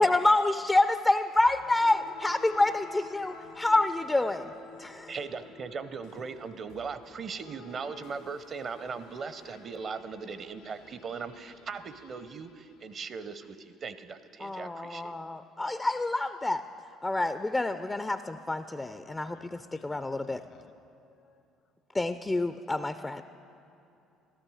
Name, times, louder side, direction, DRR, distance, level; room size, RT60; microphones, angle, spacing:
voice 1, 0.0-4.5 4.8-5.1 14.4-16.6 17.0-20.4 21.9-23.2, left 2 dB, 20° left, 11 dB, 0.4 m, -27 dB
sound 1, 1.4-13.3, left 3 dB, 75° left, 1.1 m, -51 dB
voice 2, 5.1-15.1, right 5 dB, 45° right, 13 dB, 0.6 m, -39 dB
voice 3, 19.2-21.4, left 7 dB, 55° left, 11 dB, 0.8 m, -56 dB
14.0 x 13.0 x 4.9 m, 2.8 s
hypercardioid pair, 60°, 0 cm